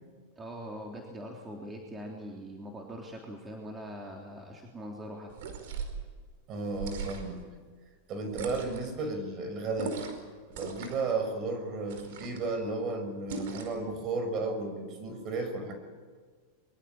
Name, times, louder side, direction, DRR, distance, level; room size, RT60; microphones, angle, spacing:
voice 1, 0.3-5.3, equal, 15° right, 0 dB, 3.4 m, -42 dB
sound 1, 5.3-6.0 6.7-7.4 8.3-8.9 9.8-10.2 10.5-11.1 11.9-12.5 13.3-13.8, right 5 dB, 70° right, 4.9 m, -39 dB
voice 2, 6.5-7.5 8.1-10.0 10.5-15.7, right 3 dB, 40° right, 7 dB, 5.8 m, -33 dB
23.5 x 23.5 x 8.9 m, 1.5 s
supercardioid pair, 125°, 0 cm